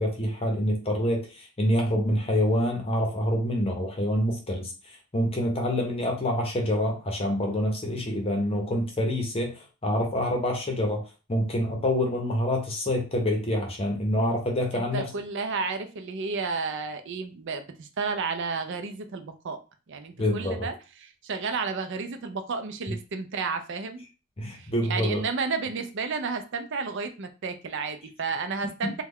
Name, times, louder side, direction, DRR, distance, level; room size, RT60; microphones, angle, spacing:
voice 1, 0.0-4.7 5.1-11.0 11.3-15.1 20.2-20.7 24.4-25.2, left 1 dB, 30° left, 1 dB, 0.8 m, -26 dB
voice 2, 14.7-19.6 19.9-20.7 21.0-24.0 24.5-29.0, right 4 dB, 60° right, 8 dB, 0.5 m, -32 dB
3.2 x 2.3 x 3.6 m, 0.32 s
head